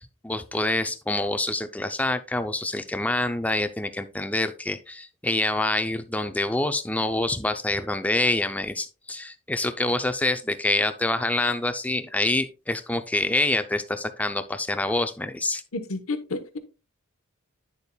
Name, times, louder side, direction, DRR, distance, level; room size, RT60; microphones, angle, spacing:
voice 1, 0.2-15.6, left 2 dB, 5° left, 0.5 m, -26 dB
voice 2, 15.7-16.6, left 3 dB, 75° left, 1.0 m, -31 dB
9.8 x 6.8 x 2.3 m
head